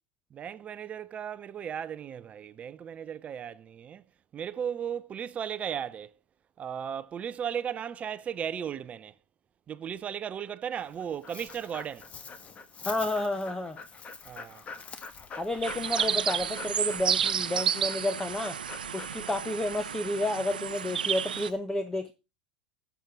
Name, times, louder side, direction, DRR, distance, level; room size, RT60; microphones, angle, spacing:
voice 1, 0.3-4.0 4.3-6.1 6.6-9.1 9.7-12.1 14.3-14.6, right 8 dB, 30° right, 0.6 m, -36 dB
Dog, 10.8-21.6, left 5 dB, 30° left, 1.4 m, -45 dB
voice 2, 12.8-13.8 15.4-18.6 18.9-22.1, left 1 dB, 10° left, 1.0 m, -31 dB
sound 1, 15.6-21.5, right 8 dB, 85° right, 0.7 m, -31 dB
17.0 x 7.0 x 3.7 m
hypercardioid pair, 95°, 5 cm